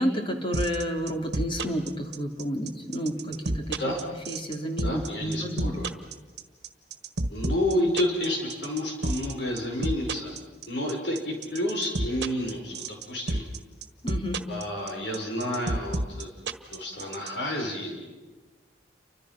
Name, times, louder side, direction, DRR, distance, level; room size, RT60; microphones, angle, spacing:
voice 1, 0.0-3.8 4.3-5.7 14.0-14.4, equal, 30° left, 3 dB, 3.0 m, -30 dB
sound 1, 0.5-17.3, right 2 dB, 70° right, 1.5 m, -29 dB
voice 2, 3.3-4.1 4.8-5.9 7.3-10.3 10.7-13.4 14.5-16.3 16.7-18.1, left 1 dB, 75° left, 1 dB, 5.5 m, -30 dB
30.0 x 25.0 x 6.0 m, 1.3 s
head